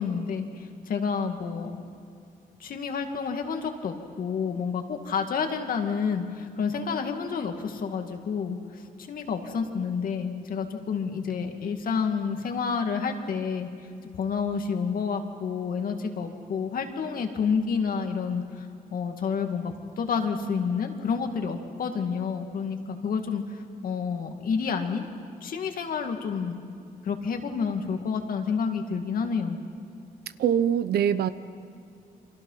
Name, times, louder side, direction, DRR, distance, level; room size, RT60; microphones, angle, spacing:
voice 1, 0.0-1.8 2.6-13.7 14.1-23.4 23.8-25.1 25.4-26.6 27.0-29.6, left 6 dB, 60° left, 5 dB, 2.3 m, -29 dB
voice 2, 30.4-31.3, right 9 dB, 80° right, 13 dB, 0.9 m, -23 dB
29.5 x 24.5 x 5.8 m, 2.4 s
cardioid pair, 110°, 16 cm